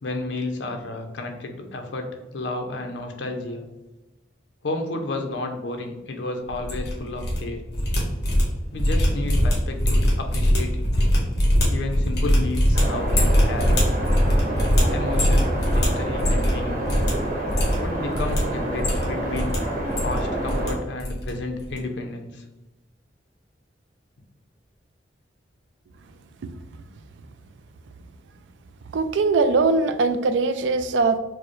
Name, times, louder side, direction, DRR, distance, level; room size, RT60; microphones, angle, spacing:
voice 1, 0.0-3.7 4.6-7.6 8.7-10.9 11.7-13.9 14.9-16.8 17.8-19.6 20.0-22.4, left 2 dB, 85° left, 4 dB, 0.6 m, -32 dB
sound 1, 6.5-7.4 7.6-16.6 16.8-17.1 17.4-18.4 18.7-19.6 19.8-20.7 21.0-21.3 21.6-21.8, equal, 60° left, 1.2 m, -21 dB
sound 2, 12.7-20.8, right 1 dB, 50° right, 0.9 m, -28 dB
voice 2, 28.9-31.2, right 3 dB, 85° right, 10 dB, 0.3 m, -21 dB
4.5 x 2.1 x 3.0 m, 1.0 s
head